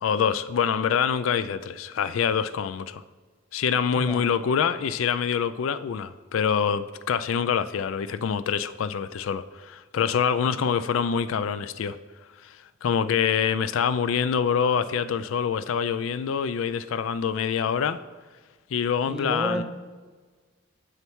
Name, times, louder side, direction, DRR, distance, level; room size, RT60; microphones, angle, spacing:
voice 1, 0.0-3.0 3.5-12.0 12.4-18.0 18.7-19.6, left 7 dB, 85° left, 0.4 m, -25 dB
voice 2, 19.1-19.6, equal, 5° right, 0.9 m, -31 dB
7.2 x 6.5 x 4.6 m
head